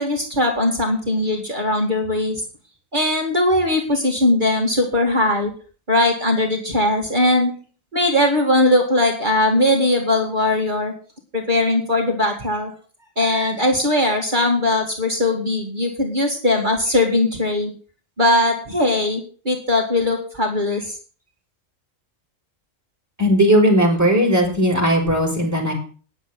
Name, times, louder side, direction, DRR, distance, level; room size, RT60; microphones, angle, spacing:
voice 1, 0.0-2.4 2.9-5.5 5.9-7.5 7.9-10.9 11.3-12.7 13.2-17.7 18.2-21.0, left 1 dB, 35° right, 1 dB, 2.6 m, -19 dB
voice 2, 23.2-25.7, equal, 10° right, -2 dB, 5.5 m, -17 dB
10.0 x 8.1 x 8.0 m, 0.39 s
omnidirectional pair, 1.4 m